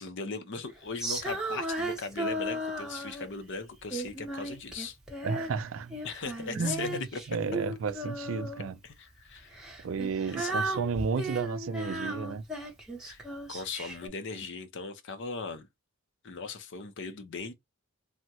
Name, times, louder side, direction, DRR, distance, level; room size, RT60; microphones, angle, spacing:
voice 1, 0.0-5.0 6.0-7.2 8.8-9.6 10.3-10.9 13.0-13.2 13.5-15.7 16.2-17.5, left 4 dB, 55° left, 0.5 m, -38 dB
Female singing, 1.0-3.4 3.9-5.6 5.9-8.7 9.5-14.1, right 1 dB, 5° right, 0.7 m, -35 dB
voice 2, 5.2-6.0 6.5-8.8 9.8-12.4, right 5 dB, 60° right, 0.4 m, -32 dB
3.4 x 2.1 x 2.8 m
head